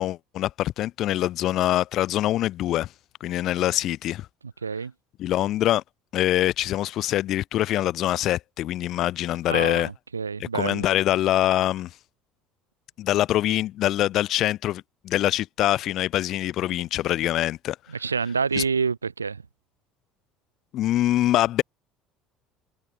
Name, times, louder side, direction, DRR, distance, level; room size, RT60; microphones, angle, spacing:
voice 1, 0.0-2.9 3.2-4.3 5.2-5.8 6.1-9.9 10.4-11.9 13.0-17.8 18.6-18.7 20.7-21.6, left 14 dB, 50° left, 0.3 m, -24 dB
voice 2, 4.6-4.9 9.5-10.9 17.9-19.4, right 5 dB, 85° right, 0.3 m, -27 dB
figure-of-eight pair, 60°, 0 cm